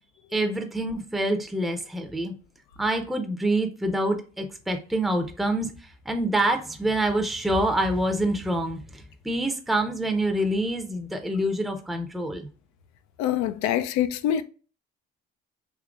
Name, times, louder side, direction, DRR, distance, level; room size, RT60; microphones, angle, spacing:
voice 1, 0.3-2.3 2.8-12.5, right 1 dB, ahead, 0.6 m, -26 dB
voice 2, 13.2-14.4, left 11 dB, 70° left, 0.5 m, -25 dB
3.7 x 2.8 x 2.4 m
hypercardioid pair, 55°, 29 cm